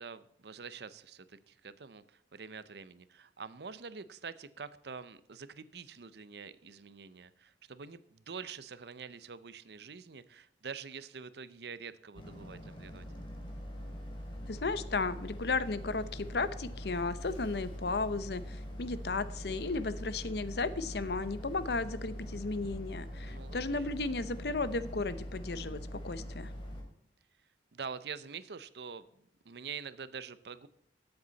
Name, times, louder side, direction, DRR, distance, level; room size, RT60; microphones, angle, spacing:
voice 1, 0.0-13.1 23.2-23.9 27.7-29.0 29.4-30.7, right 5 dB, 65° right, 15 dB, 0.6 m, -46 dB
Boat Water vehicle, 12.1-26.8, equal, 30° left, 2.7 m, -43 dB
voice 2, 14.5-26.5, left 3 dB, 65° left, 14 dB, 0.7 m, -34 dB
14.0 x 8.0 x 4.1 m, 0.77 s
head